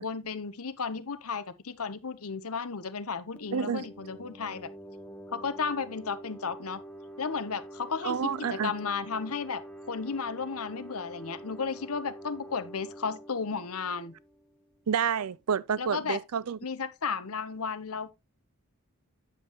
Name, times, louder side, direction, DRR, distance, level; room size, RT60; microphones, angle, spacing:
voice 1, 0.0-4.7 5.3-6.8 7.2-9.6 9.9-14.1 15.8-16.2 16.6-18.1, left 5 dB, 75° left, 0.9 m, -34 dB
sound 1, 3.4-14.8, right 1 dB, 5° left, 1.0 m, -46 dB
voice 2, 3.5-3.9 8.0-8.7 14.9-16.6, right 7 dB, 80° right, 0.5 m, -29 dB
9.1 x 7.6 x 2.9 m
head